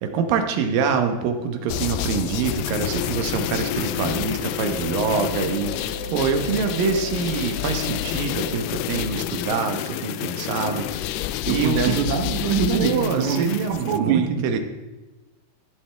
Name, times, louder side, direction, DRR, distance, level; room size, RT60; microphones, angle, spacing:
voice 1, 0.0-11.2 11.5-12.0 12.7-14.6, right 6 dB, 70° right, 5 dB, 2.6 m, -25 dB
sound 1, 1.7-14.0, left 13 dB, 85° left, 2.6 m, -29 dB
sound 2, 2.8-8.5, right 1 dB, 55° left, 6.4 m, -41 dB
sound 3, 7.7-8.1 8.4-8.9 9.3-9.5 10.6-11.7, right 1 dB, 10° right, 3.1 m, -42 dB
voice 2, 11.5-14.6, right 7 dB, 90° right, 6 dB, 1.6 m, -24 dB
14.5 x 11.5 x 3.4 m, 1.1 s
omnidirectional pair, 4.7 m